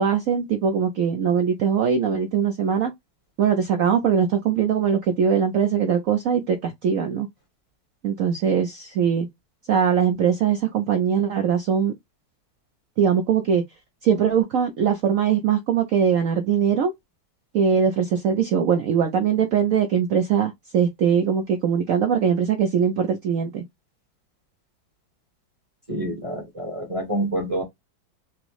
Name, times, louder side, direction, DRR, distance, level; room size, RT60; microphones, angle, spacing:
voice 1, 0.0-2.9 3.4-7.3 8.0-9.3 9.7-11.9 13.0-13.6 14.0-16.9 17.5-23.6, right 7 dB, 85° right, 0.7 m, -21 dB
voice 2, 25.9-27.6, right 1 dB, 25° right, 0.8 m, -27 dB
6.0 x 2.0 x 3.1 m
omnidirectional pair, 2.1 m